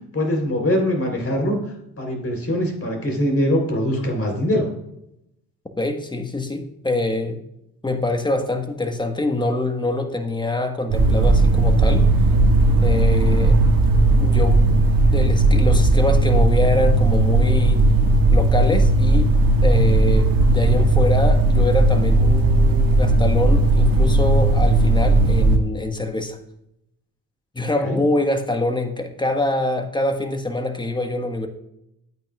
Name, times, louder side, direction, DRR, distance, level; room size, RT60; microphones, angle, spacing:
voice 1, 0.1-1.6 2.0-4.7 27.8-28.0, equal, 35° left, 2 dB, 3.8 m, -22 dB
voice 2, 5.8-7.4 7.8-12.1 12.8-13.6 14.2-14.7 15.1-17.8 18.3-19.3 19.6-26.4 27.5-31.5, left 2 dB, 10° left, 6 dB, 1.5 m, -24 dB
sound 1, 10.9-25.6, right 2 dB, 60° right, 1.3 m, -16 dB
12.5 x 8.7 x 2.4 m, 0.81 s
hypercardioid pair, 50°, 39 cm